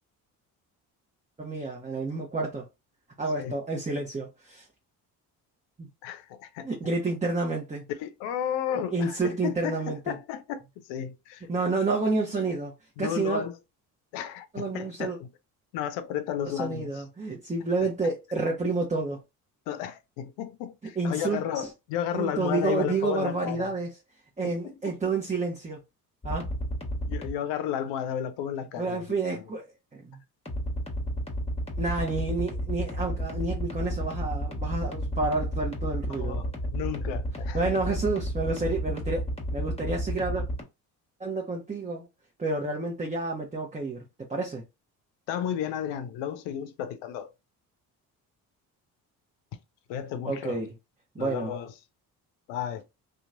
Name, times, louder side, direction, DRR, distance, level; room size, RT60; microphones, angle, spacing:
voice 1, 1.4-2.7 3.2-4.7 5.8-5.9 6.6-7.8 8.9-10.2 11.5-12.7 13.0-13.4 14.5-15.2 16.5-19.2 21.0-21.7 22.1-23.9 24.4-25.8 26.2-26.5 28.8-29.7 29.9-30.2 31.8-36.4 37.5-39.3 39.5-40.4 41.2-42.1 42.4-44.0 44.3-44.6 50.2-50.7 51.1-51.5, right 3 dB, 15° right, 0.9 m, -29 dB
voice 2, 6.0-6.7 8.0-10.6 10.9-11.5 13.0-13.6 14.1-15.3 15.7-17.0 19.7-23.7 24.4-24.5 24.9-25.0 27.1-29.4 36.1-37.7 45.3-47.3 49.9-50.6 51.2-51.7 52.5-52.8, left 9 dB, 75° left, 0.6 m, -33 dB
sound 1, 26.2-27.3 30.5-40.6, equal, 15° left, 1.2 m, -31 dB
2.8 x 2.3 x 2.5 m
hypercardioid pair, 55°, 45 cm